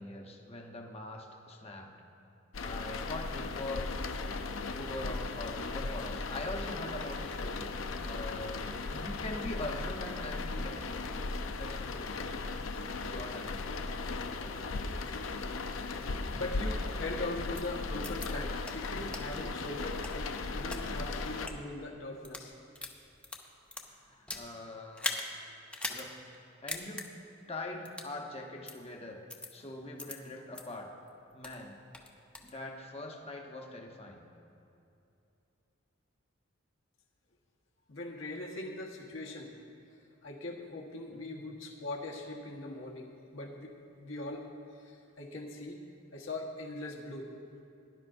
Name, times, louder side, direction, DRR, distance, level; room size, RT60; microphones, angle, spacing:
voice 1, 0.0-1.9 2.6-4.2 4.7-11.0 11.6-12.4 12.9-13.7 14.4-14.7 23.8-25.2 25.9-26.2 26.6-27.1 27.5-29.2 29.5-30.9 31.3-31.8 32.4-34.3 41.1-41.4, left 2 dB, 30° left, 1 dB, 1.0 m, -43 dB
sound 1, 2.5-21.5, left 3 dB, 90° left, 0.6 m, -37 dB
voice 2, 16.3-22.6 37.9-39.5 40.2-45.8 46.1-47.3, left 2 dB, 75° left, 0 dB, 1.4 m, -41 dB
sound 2, 17.5-17.6 18.0-18.3 18.6-18.7 19.1-19.2 19.8-20.8 21.3-21.5 22.1-22.5 22.8-24.5 24.9-25.3 25.7-26.0 26.3-26.4 26.7-27.1 27.9-28.1 28.7-28.8 29.3-29.5 30.0-30.1 30.5-30.6 31.1-31.6 31.9-32.5, left 2 dB, 5° left, 0.7 m, -39 dB
18.0 x 11.0 x 2.6 m, 2.7 s
head